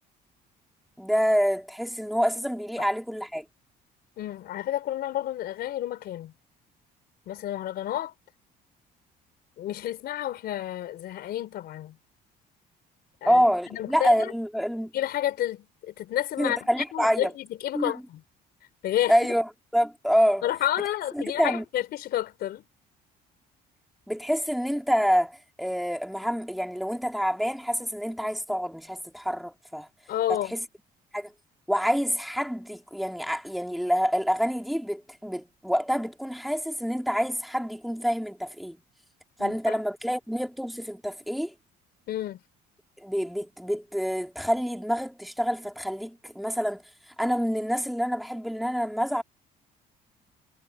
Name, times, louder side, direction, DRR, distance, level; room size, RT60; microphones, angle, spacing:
voice 1, 1.0-3.4 13.2-14.9 16.4-17.3 17.7-17.9 19.1-20.4 21.1-21.6 24.1-29.9 30.3-30.6 31.1-31.3 31.7-38.8 39.4-41.5 43.0-46.8 47.2-49.2, equal, ahead, 3.1 m, -27 dB
voice 2, 4.2-6.3 7.3-8.1 9.6-12.0 13.2-13.4 13.7-14.3 14.9-18.2 18.8-19.2 20.4-22.6 30.1-30.6 39.4-39.8 42.1-42.4, left 12 dB, 70° left, 3.9 m, -30 dB
cardioid pair, 110°, 17 cm